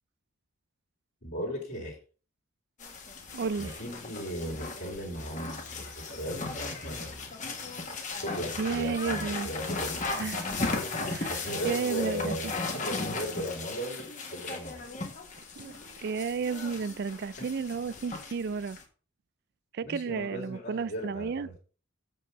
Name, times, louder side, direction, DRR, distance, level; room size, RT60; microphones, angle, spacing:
voice 1, 1.2-2.0 3.6-7.3 8.2-10.3 11.3-14.8 17.4-17.5 19.8-21.5, equal, 55° left, 2.6 m, -37 dB
sound 1, 2.8-18.8, left 3 dB, 35° left, 1.5 m, -36 dB
voice 2, 3.3-3.7 8.6-9.5 10.2-10.5 11.0-11.4 11.6-12.3 15.6-15.7 16.0-18.8 19.7-21.5, right 5 dB, 45° right, 0.3 m, -32 dB
7.4 x 5.5 x 5.6 m
head